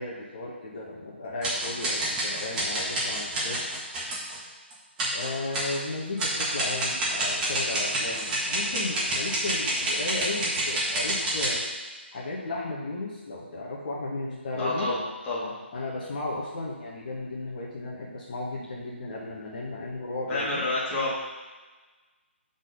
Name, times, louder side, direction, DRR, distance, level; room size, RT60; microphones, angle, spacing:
voice 1, 0.0-3.7 5.1-11.6 12.1-14.9 15.7-20.6, left 2 dB, 45° left, -6 dB, 1.5 m, -35 dB
sound 1, 1.4-4.4 4.7-4.8 5.0-5.8 6.2-11.6, right 1 dB, 10° right, 1.4 m, -28 dB
voice 2, 14.6-15.5 20.3-21.2, left 2 dB, 15° left, -8 dB, 1.9 m, -29 dB
5.9 x 4.1 x 5.6 m, 1.3 s
figure-of-eight pair, 150°, 7 cm